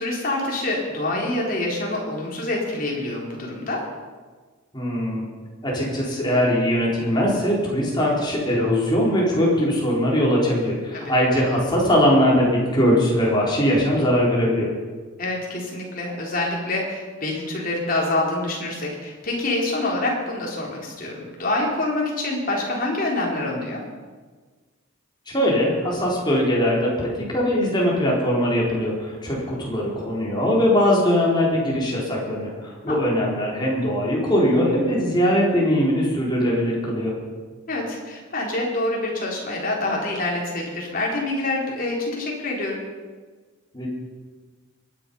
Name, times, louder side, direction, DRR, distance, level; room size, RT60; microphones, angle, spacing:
voice 1, 0.0-3.8 10.9-11.1 15.2-23.8 32.8-33.0 37.7-42.8, left 2 dB, 45° left, -2 dB, 3.8 m, -26 dB
voice 2, 4.7-5.2 5.6-14.7 25.3-37.1 43.7-43.9, equal, 20° left, -4 dB, 4.1 m, -21 dB
23.0 x 10.5 x 5.5 m, 1.4 s
head